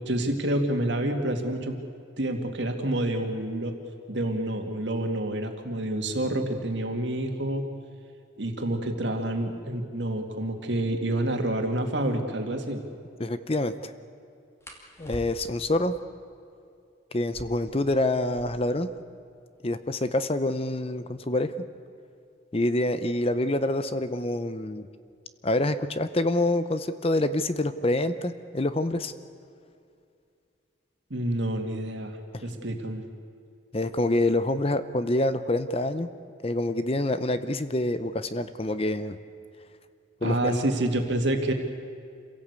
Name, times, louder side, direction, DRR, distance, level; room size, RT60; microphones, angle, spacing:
voice 1, 0.1-1.8 2.2-3.7 4.1-7.6 8.4-12.8 31.1-33.0 40.2-41.5, right 1 dB, 60° right, 4 dB, 2.4 m, -28 dB
sound 1, 11.9-12.1 14.6-15.7 17.2-18.8 19.1-19.2 19.4-20.0 20.6-23.2 24.2-24.5 24.9-25.4 25.7-26.4, equal, 15° left, 2.3 m, -47 dB
voice 2, 13.2-13.9 15.0-15.9 17.1-18.9 19.6-21.5 22.5-24.9 25.4-29.1 32.3-32.4 33.7-36.1 36.4-39.2 40.2-40.6, left 1 dB, 30° left, 12 dB, 0.7 m, -26 dB
27.0 x 17.0 x 8.3 m, 2.4 s
head